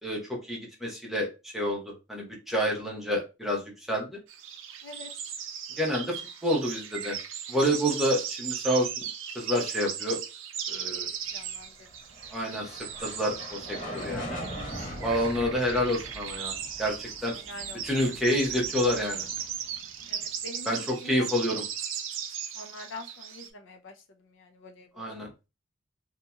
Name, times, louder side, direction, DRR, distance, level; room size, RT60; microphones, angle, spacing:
voice 1, 0.0-1.8 2.1-3.6 3.9-4.1 5.8-6.1 6.4-7.2 7.5-8.9 9.3-10.2 10.7-11.1 12.3-14.4 15.0-16.5 16.8-17.3 17.8-19.2 20.7-21.6 25.0-25.3, equal, ahead, 0.8 m, -28 dB
sound 1, 4.3-23.5, right 8 dB, 80° right, 0.5 m, -37 dB
voice 2, 5.8-6.1 11.3-11.9 17.5-17.8 20.1-20.7 21.0-21.6 22.5-23.9 24.3-25.2, left 2 dB, 70° left, 0.5 m, -45 dB
sound 2, 11.9-20.3, equal, 45° left, 1.4 m, -41 dB
2.8 x 2.8 x 2.2 m
head